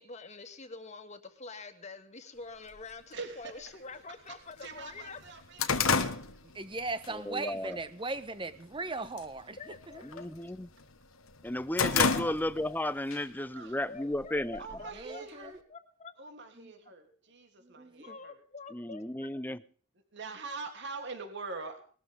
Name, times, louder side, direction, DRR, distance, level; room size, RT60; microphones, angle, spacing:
voice 1, 0.0-5.2 9.6-10.3 12.1-12.3 13.9-16.1 18.0-19.3, left 4 dB, 35° left, 2.1 m, -47 dB
sound 1, 2.7-2.8 3.7-3.8 4.3-4.4 4.7-7.1 7.5-7.8 8.3-8.8 9.0-9.4 9.7-10.9 11.3-12.8 13.1-13.2 14.1-15.0, left 5 dB, 90° left, 1.5 m, -30 dB
voice 2, 3.1-3.5 4.6-6.2 7.7-7.8 13.5-13.8 14.6-15.6 16.2-18.4 20.1-21.8, right 4 dB, 60° right, 3.1 m, -43 dB
voice 3, 6.5-10.0 14.9-15.5 16.6-16.7 17.6-18.2, right 3 dB, 25° right, 1.3 m, -38 dB
voice 4, 7.1-7.8 10.0-10.7 11.4-14.6 18.7-19.6, left 1 dB, 10° left, 0.7 m, -34 dB
21.0 x 13.0 x 3.7 m
head